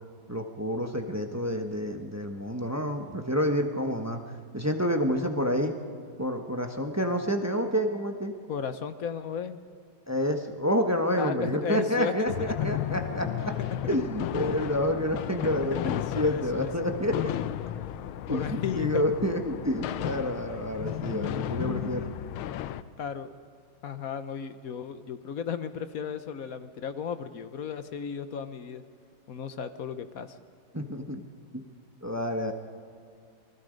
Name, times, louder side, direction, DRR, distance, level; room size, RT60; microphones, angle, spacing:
voice 1, 0.3-4.2 4.5-5.7 6.2-8.3 10.1-13.5 13.9-17.3 18.3-22.1 30.7-31.2 32.0-32.5, equal, 10° right, 5 dB, 0.9 m, -28 dB
voice 2, 8.5-9.6 11.2-12.5 15.7-16.7 17.8-17.9 18.3-19.0 23.0-23.3 23.8-28.8 29.3-30.4, left 7 dB, 55° left, 11 dB, 1.1 m, -34 dB
sound 1, 12.3-22.8, left 12 dB, 85° left, 1.5 m, -33 dB
28.5 x 20.0 x 5.2 m, 2.3 s
omnidirectional pair, 2.2 m